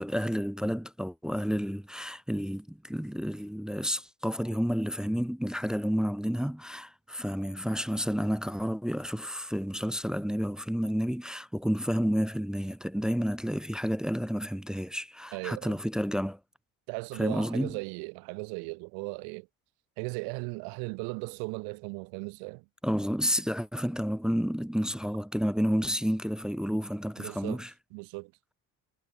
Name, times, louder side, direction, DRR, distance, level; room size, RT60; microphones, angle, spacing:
voice 1, 0.0-16.4 17.2-17.8 22.8-27.7, equal, ahead, 0.4 m, -30 dB
voice 2, 15.3-15.8 16.9-19.5 20.0-22.7 27.2-27.6 27.9-28.3, right 36 dB, 90° right, 0.7 m, -37 dB
supercardioid pair, 85°, 36 cm